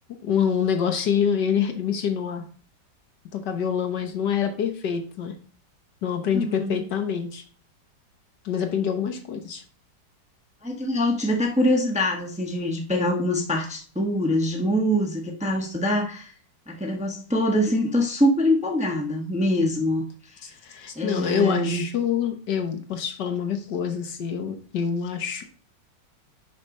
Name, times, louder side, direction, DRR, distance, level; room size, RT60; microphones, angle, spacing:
voice 1, 0.2-2.4 3.3-5.3 6.0-7.4 8.4-9.6 20.4-25.4, left 7 dB, 70° left, 5 dB, 1.6 m, -26 dB
voice 2, 6.3-6.8 10.6-16.3 16.7-20.0 20.9-21.8, left 1 dB, 5° right, 0 dB, 0.9 m, -24 dB
6.4 x 4.4 x 5.3 m, 0.42 s
omnidirectional pair, 2.0 m